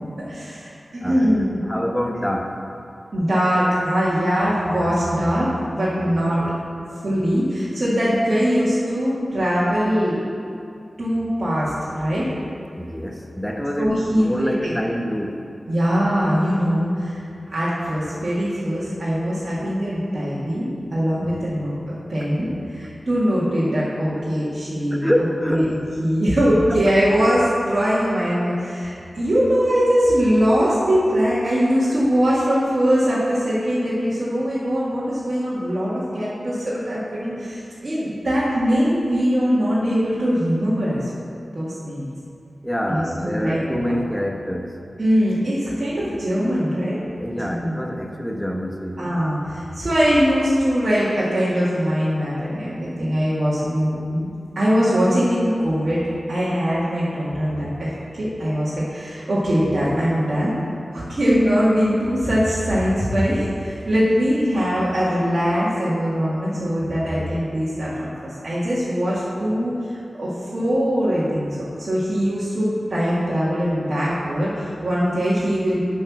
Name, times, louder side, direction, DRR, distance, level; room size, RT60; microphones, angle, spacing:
voice 1, 0.2-1.5 3.1-6.5 7.0-10.2 11.0-12.3 13.8-14.7 15.7-21.7 22.1-25.0 25.5-25.7 26.0-41.1 41.5-42.1 42.9-43.6 43.9-44.0 45.0-47.0 47.4-47.8 49.0-56.0 56.3-60.5 60.9-75.8, equal, 55° right, -10 dB, 2.0 m, -21 dB
voice 2, 1.0-1.3 1.6-2.6 6.0-6.1 6.4-6.5 12.7-15.5 21.3-21.4 24.9-25.7 26.6-26.8 42.6-44.8 47.2-49.1, equal, 5° left, 2 dB, 1.0 m, -26 dB
10.0 x 4.5 x 6.0 m, 2.6 s
wide cardioid pair, 60°, 0 cm